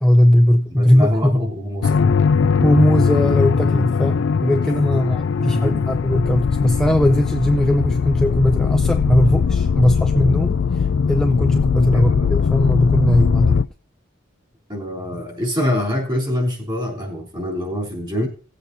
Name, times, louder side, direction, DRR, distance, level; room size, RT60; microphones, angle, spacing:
voice 1, 0.0-1.4 2.6-13.6, left 1 dB, 5° left, 4 dB, 0.5 m, -19 dB
voice 2, 0.7-2.1 2.4-2.5 5.4-5.9 11.9-12.3 14.7-18.3, left 1 dB, 20° right, -1 dB, 3.4 m, -24 dB
sound 1, 1.8-13.6, left 5 dB, 65° left, 0.4 m, -19 dB
18.0 x 7.9 x 2.7 m, 0.37 s
head